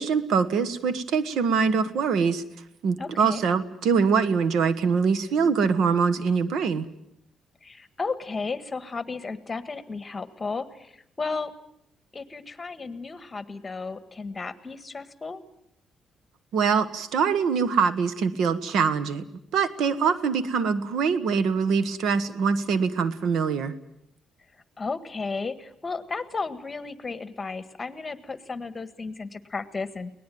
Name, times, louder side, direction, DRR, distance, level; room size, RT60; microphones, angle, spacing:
voice 1, 0.0-2.4 2.8-6.9 16.5-19.2 19.5-23.7, right 5 dB, 75° right, 14 dB, 1.4 m, -23 dB
voice 2, 3.0-3.4 7.6-11.5 12.1-15.4 24.8-30.1, left 4 dB, 25° left, 12 dB, 1.7 m, -34 dB
23.0 x 19.0 x 9.3 m, 0.77 s
cardioid pair, 90°, 0 cm